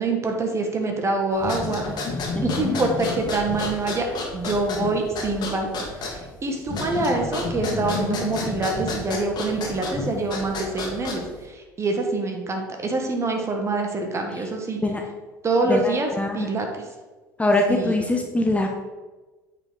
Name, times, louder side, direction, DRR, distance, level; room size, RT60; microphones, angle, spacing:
voice 1, 0.0-1.8 2.4-4.1 4.3-5.7 6.0-14.8 15.4-16.8 17.7-17.9, right 2 dB, 30° right, 3 dB, 1.6 m, -25 dB
sound 1, 1.4-11.4, left 3 dB, 45° left, 1.9 m, -30 dB
voice 2, 15.7-16.5 17.4-18.7, left 2 dB, 15° left, 3 dB, 0.9 m, -23 dB
8.6 x 5.0 x 4.0 m, 1.2 s
hypercardioid pair, 65°, 10 cm